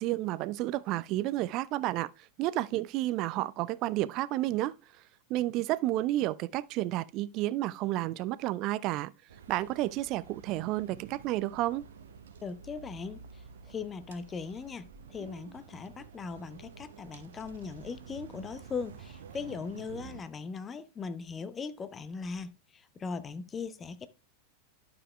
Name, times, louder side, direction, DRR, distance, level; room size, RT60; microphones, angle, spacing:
voice 1, 0.0-2.1 2.4-4.8 5.3-9.1 9.5-11.8, right 16 dB, 40° right, 0.4 m, -31 dB
sound 1, 9.3-20.2, right 6 dB, 65° right, 0.8 m, -50 dB
voice 2, 12.4-24.1, left 5 dB, 20° left, 0.7 m, -39 dB
11.5 x 6.8 x 2.3 m
figure-of-eight pair, 90°, 0 cm